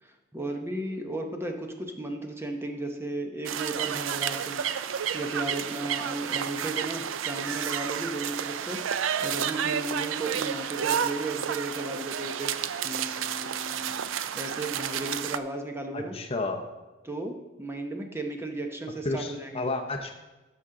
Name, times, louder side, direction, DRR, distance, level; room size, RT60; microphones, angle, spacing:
voice 1, 0.0-4.6 5.1-8.8 9.2-12.5 12.8-14.0 14.4-16.1 17.0-19.7, right 2 dB, 15° right, 3 dB, 0.8 m, -35 dB
sound 1, 3.5-15.4, right 8 dB, 85° right, 0.4 m, -31 dB
voice 2, 15.9-16.7 19.0-20.1, left 2 dB, 30° left, 4 dB, 0.7 m, -31 dB
12.0 x 6.1 x 3.8 m, 1.1 s
head